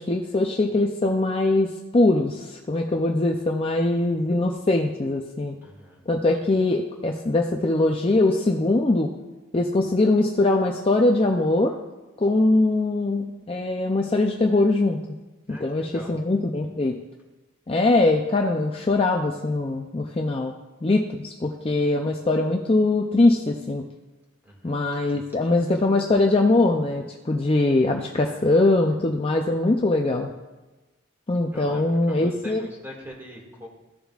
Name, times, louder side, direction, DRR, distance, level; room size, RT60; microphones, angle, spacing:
voice 1, 0.0-5.6 6.1-9.1 9.5-11.7 12.2-15.0 15.5-16.9 17.7-20.5 20.8-23.8 24.6-30.3 31.3-32.7, left 2 dB, 25° left, 2 dB, 0.4 m, -22 dB
voice 2, 5.6-6.0 15.5-16.1 24.4-24.8 31.5-33.7, left 1 dB, 10° right, -2 dB, 2.0 m, -42 dB
15.0 x 6.8 x 2.4 m, 1.2 s
head